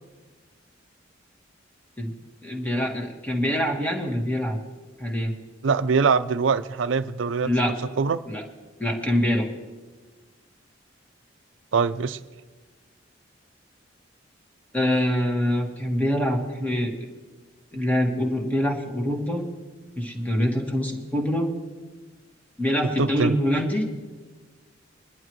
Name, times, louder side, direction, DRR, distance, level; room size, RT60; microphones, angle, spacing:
voice 1, 2.4-4.6 5.0-5.3 7.4-7.8 8.3-8.5 8.8-9.5 14.7-16.9 17.7-19.5 20.0-21.5 22.6-23.8, equal, 10° left, 1.7 m, -25 dB
voice 2, 5.6-7.5 8.0-8.2 11.7-12.2 23.0-23.4, right 5 dB, 75° right, 0.5 m, -23 dB
22.0 x 11.0 x 3.1 m
head